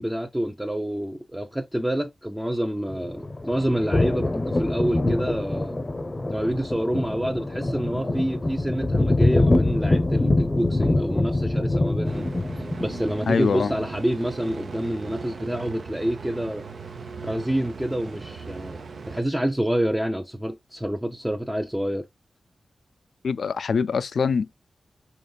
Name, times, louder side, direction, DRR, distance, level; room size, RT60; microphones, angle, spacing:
voice 1, 0.0-5.8 6.3-16.6 17.2-18.8 19.1-22.1, right 1 dB, 10° right, 0.5 m, -28 dB
sound 1, 2.9-13.3, left 2 dB, 35° left, 0.6 m, -24 dB
sound 2, 12.0-19.2, right 4 dB, 70° right, 0.6 m, -38 dB
voice 2, 13.3-13.7 23.2-24.5, left 5 dB, 80° left, 0.3 m, -24 dB
5.1 x 3.0 x 2.2 m
cardioid pair, 60°, 0 cm